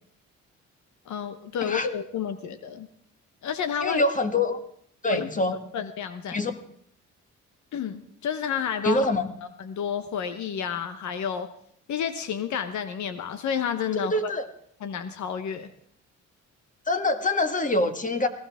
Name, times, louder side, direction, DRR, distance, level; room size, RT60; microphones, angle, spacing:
voice 1, 1.1-2.9 3.4-4.0 5.1-6.4 7.7-9.1 9.6-11.5 11.9-14.3 14.8-15.7, left 8 dB, 70° left, 10 dB, 1.1 m, -30 dB
voice 2, 3.8-4.6 5.0-5.6 6.3-6.6 8.8-9.3 13.9-14.5 16.9-18.3, left 2 dB, 25° left, 7 dB, 1.7 m, -25 dB
20.5 x 16.0 x 3.6 m, 0.64 s
cardioid pair, 90°, 30 cm